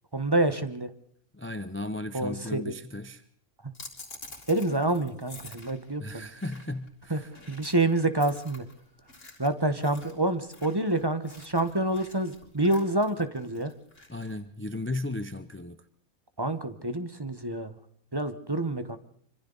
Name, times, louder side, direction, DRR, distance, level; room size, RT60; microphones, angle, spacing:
voice 1, 0.1-0.9 2.1-2.7 4.5-6.3 7.1-7.2 7.5-8.6 9.4-13.7 16.4-17.7 18.1-19.0, right 2 dB, 20° right, 1.0 m, -27 dB
voice 2, 1.3-3.2 6.0-7.3 14.1-15.8, left 2 dB, 15° left, 0.4 m, -35 dB
sound 1, 3.7-14.4, left 2 dB, 60° left, 4.0 m, -49 dB
25.5 x 25.0 x 4.0 m
omnidirectional pair, 1.5 m